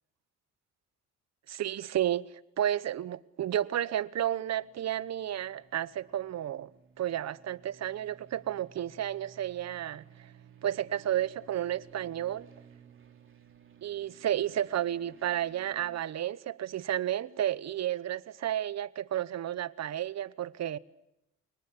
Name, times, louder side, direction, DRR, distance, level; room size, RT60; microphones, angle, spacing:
voice 1, 1.5-2.2 2.6-6.7 7.0-10.0 10.6-12.5 13.8-20.8, right 11 dB, 60° right, 1.0 m, -32 dB
sound 1, 4.4-16.0, right 6 dB, 40° right, 3.7 m, -57 dB
29.0 x 19.0 x 9.7 m
cardioid pair, 90°, 30 cm